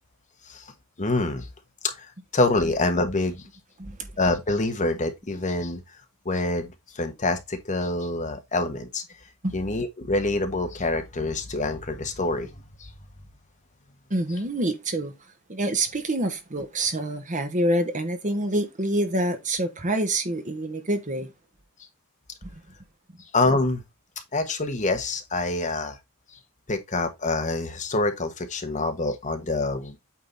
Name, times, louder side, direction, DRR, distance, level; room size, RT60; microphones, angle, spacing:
voice 1, 1.0-1.5 1.8-3.5 4.2-5.8 6.2-9.0 9.5-12.9 23.3-23.8 24.3-26.0 26.3-26.4 26.7-29.9, left 2 dB, 35° left, 1.3 m, -26 dB
voice 2, 14.1-15.1 15.5-21.3 22.4-22.5, right 1 dB, 35° right, 1.2 m, -26 dB
8.6 x 3.8 x 4.0 m
head